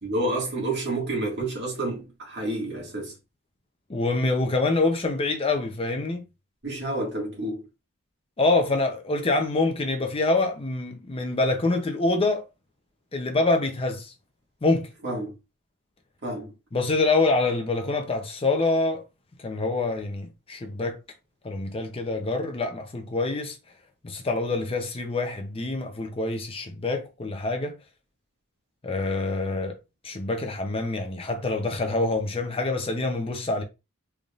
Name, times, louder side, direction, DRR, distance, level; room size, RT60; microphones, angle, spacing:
voice 1, 0.0-3.1 6.6-7.6 15.0-15.3 16.2-16.5, right 2 dB, 50° right, 1.9 m, -29 dB
voice 2, 3.9-6.2 8.4-12.4 13.1-14.1 14.6-14.9 16.7-19.0 19.4-21.0 21.4-23.6 24.0-27.7 28.8-29.8 30.0-33.6, left 3 dB, 25° left, 0.5 m, -26 dB
3.8 x 3.5 x 2.4 m
head